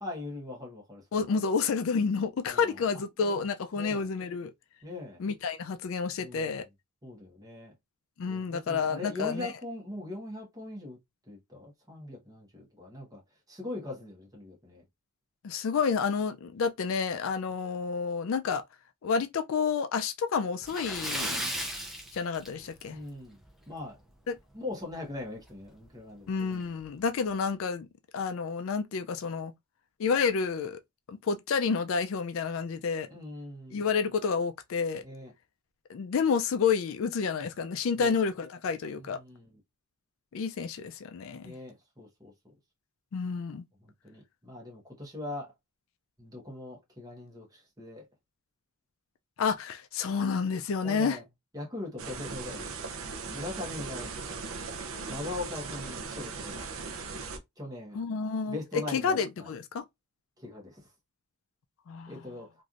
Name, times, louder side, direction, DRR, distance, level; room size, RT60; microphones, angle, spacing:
voice 1, 0.0-1.4 2.5-2.8 3.2-3.4 3.8-4.1 4.8-5.2 6.2-6.6 7.0-7.7 8.3-11.0 11.3-13.2 13.5-14.8 22.8-23.4 23.7-24.0 24.5-26.6 33.1-33.9 35.0-35.3 38.0-38.2 39.0-39.6 41.4-42.3 43.8-45.5 46.2-48.1 50.8-51.2 51.5-52.7 53.3-54.1 55.1-56.7 57.6-58.0 58.5-59.5 60.4-60.8 62.1-62.5, left 2 dB, 15° right, 1.1 m, -41 dB
voice 2, 1.1-4.5 5.2-6.6 8.2-9.5 15.4-18.6 19.0-21.4 22.1-23.0 24.3-24.4 26.3-27.9 28.1-29.5 30.0-30.8 31.1-33.1 33.7-35.0 35.9-39.2 40.3-41.5 43.1-43.6 49.4-51.2 57.9-59.8 61.9-62.2, left 5 dB, 65° left, 0.4 m, -29 dB
Splash splatter, 20.6-23.0 23.3-23.5 23.9-24.0 25.5-25.6 25.9-26.0 26.6-26.9, right 1 dB, ahead, 0.6 m, -35 dB
sound 1, 52.0-57.4, right 4 dB, 65° right, 0.5 m, -38 dB
3.1 x 2.6 x 2.5 m
head